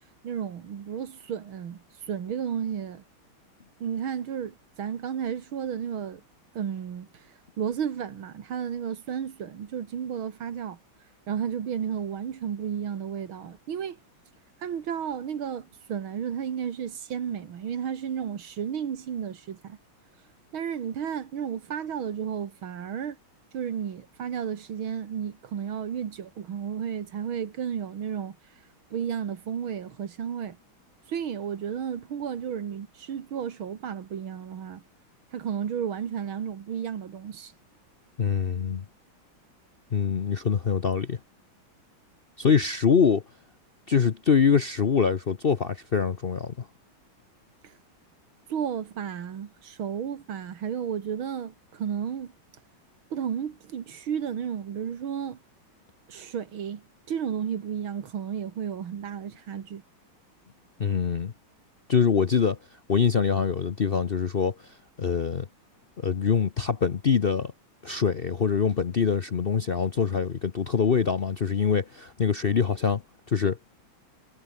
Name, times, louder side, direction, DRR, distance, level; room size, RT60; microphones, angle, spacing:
voice 1, 0.2-1.8 2.1-3.0 3.8-6.2 6.5-7.1 7.6-10.8 11.3-14.0 14.6-19.8 20.5-23.2 23.5-28.4 28.9-30.6 31.1-34.8 35.3-37.5 48.5-52.3 53.1-55.4 56.1-59.8, right 8 dB, 75° right, 2.5 m, -32 dB
voice 2, 38.2-38.8 39.9-41.2 42.4-43.2 43.9-46.7 60.8-61.3 61.9-62.6 62.9-65.5 66.0-67.5 67.8-73.0 73.3-73.6, left 6 dB, 60° left, 0.6 m, -24 dB
omnidirectional pair, 2.2 m